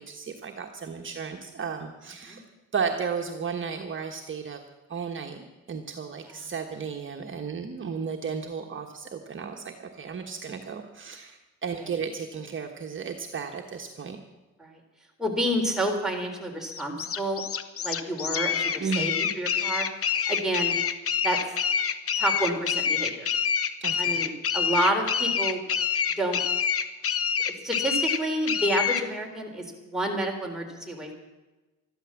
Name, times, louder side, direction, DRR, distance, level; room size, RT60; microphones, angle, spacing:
voice 1, 0.0-2.4 2.7-4.6 4.9-14.2 18.8-19.1 23.8-24.2, right 6 dB, 40° right, 2 dB, 1.3 m, -34 dB
voice 2, 15.2-17.4 17.8-19.9 20.3-20.7 21.2-21.4 22.2-23.3 24.0-25.6 26.2-26.4 27.5-31.1, right 1 dB, ahead, 0 dB, 3.6 m, -29 dB
sound 1, 16.7-29.1, left 7 dB, 50° left, 1.0 m, -27 dB
13.5 x 12.5 x 7.3 m, 1.1 s
cardioid pair, 90°, 30 cm